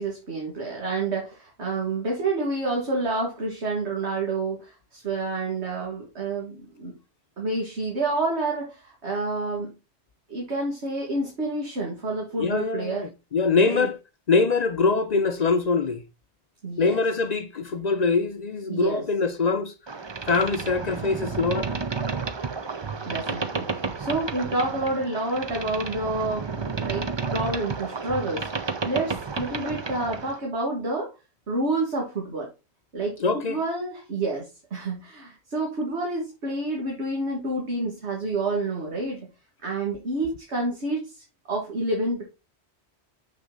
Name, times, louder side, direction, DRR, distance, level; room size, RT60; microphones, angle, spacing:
voice 1, 0.0-6.9 7.4-9.7 10.3-13.1 13.6-13.9 16.6-17.0 18.7-19.0 23.1-31.1 31.5-32.5 32.9-33.2 33.5-39.2 39.6-42.2, right 2 dB, 70° right, 2.1 m, -29 dB
voice 2, 12.4-14.0 14.3-16.0 16.8-19.7 20.3-21.7 33.2-33.6, left 4 dB, 50° left, 0.6 m, -23 dB
Boat Water vehicle, 19.9-30.4, right 4 dB, 30° right, 0.6 m, -31 dB
6.8 x 6.0 x 3.8 m
omnidirectional pair, 1.2 m